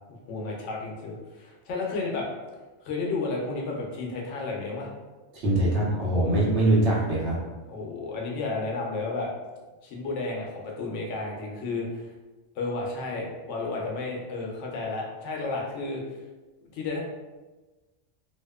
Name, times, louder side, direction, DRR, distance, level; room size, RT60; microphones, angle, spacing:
voice 1, 0.3-2.3 2.8-4.9 7.7-9.3 9.8-12.1 12.6-16.0 16.7-17.0, left 3 dB, 80° left, -1 dB, 0.9 m, -32 dB
voice 2, 5.3-7.4, right 1 dB, 70° right, -5 dB, 1.0 m, -23 dB
2.8 x 2.0 x 2.2 m, 1.2 s
omnidirectional pair, 1.2 m